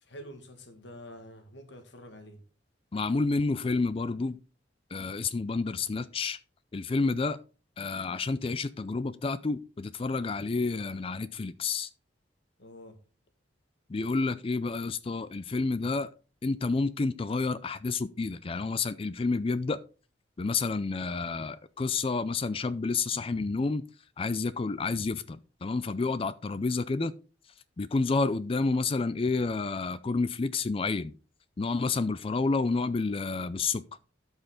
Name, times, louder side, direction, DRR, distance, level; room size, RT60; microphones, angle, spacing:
voice 1, 0.0-2.4 12.6-13.0, equal, 70° left, 1.9 m, -47 dB
voice 2, 2.9-4.4 4.9-6.4 6.7-7.4 7.8-11.9 13.9-16.1 16.4-19.8 20.4-23.8 24.2-27.1 27.8-31.1 31.6-33.8, left 3 dB, 30° left, 0.4 m, -29 dB
12.5 x 5.6 x 3.8 m
head